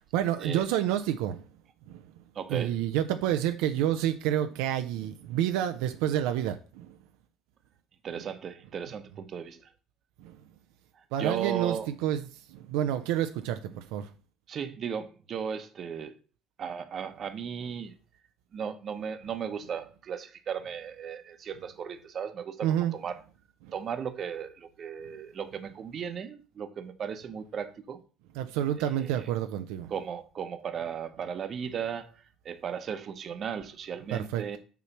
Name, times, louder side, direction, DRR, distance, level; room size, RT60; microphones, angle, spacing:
voice 1, 0.1-1.4 1.9-2.0 2.5-7.0 10.2-10.4 11.1-14.1 22.6-22.9 23.6-23.7 28.4-29.9 34.1-34.6, right 11 dB, 85° right, 0.5 m, -29 dB
voice 2, 2.3-2.7 8.0-9.7 11.2-11.9 14.5-16.1 16.6-17.9 18.5-23.2 23.7-28.0 28.8-29.3 29.9-34.6, right 7 dB, 45° right, 0.9 m, -36 dB
6.9 x 3.1 x 5.8 m
supercardioid pair, 105°, 0 cm